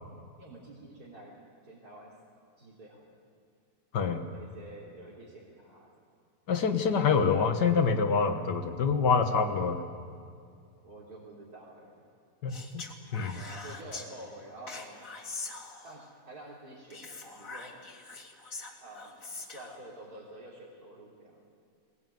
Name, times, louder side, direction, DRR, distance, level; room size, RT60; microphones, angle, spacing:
voice 1, 0.4-2.1 2.6-3.1 4.3-5.9 10.8-12.0 13.3-15.0 15.8-17.7 18.8-19.1 19.5-21.4, right 1 dB, 60° right, -8 dB, 4.0 m, -48 dB
voice 2, 6.5-9.8 12.4-12.9 13.1-13.4, left 5 dB, 80° left, 6 dB, 2.0 m, -26 dB
Speech, 12.5-14.1 14.7-16.1 16.9-19.8, left 3 dB, 55° left, 2.4 m, -43 dB
22.0 x 19.0 x 9.3 m, 2.3 s
omnidirectional pair, 1.8 m